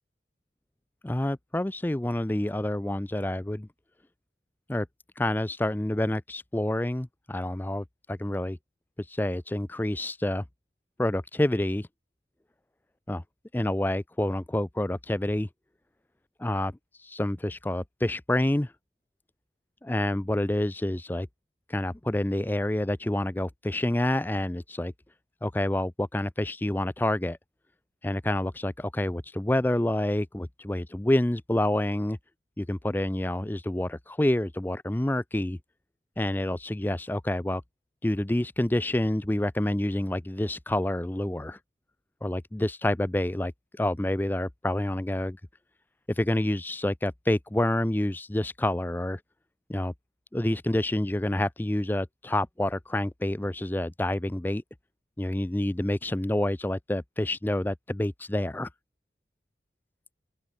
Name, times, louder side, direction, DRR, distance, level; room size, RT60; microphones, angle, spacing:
voice 1, 1.0-3.7 4.7-4.9 5.2-8.6 9.0-10.4 11.0-11.9 13.1-13.2 13.5-15.5 16.4-16.7 17.0-18.7 19.8-21.3 21.7-24.9 25.4-27.4 28.0-32.2 32.6-35.6 36.2-37.6 38.0-41.6 42.2-43.5 43.8-45.4 46.1-49.2 49.7-49.9 50.3-54.6 55.2-58.7, left 1 dB, 10° left, 0.4 m, -28 dB
open air
head